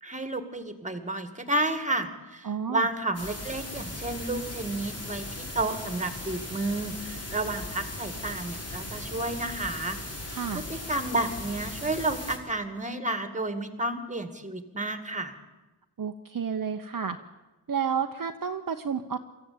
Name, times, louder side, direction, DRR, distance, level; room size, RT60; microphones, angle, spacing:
voice 1, 0.0-10.0 10.3-15.3, right 2 dB, 15° right, 9 dB, 2.1 m, -31 dB
voice 2, 2.4-2.9 10.3-10.6 16.0-17.2 17.7-19.2, right 7 dB, 50° right, 6 dB, 0.9 m, -31 dB
sound 1, 3.1-12.4, left 1 dB, 35° left, 4.4 m, -38 dB
23.5 x 14.5 x 8.8 m, 1.1 s
wide cardioid pair, 100°, 41 cm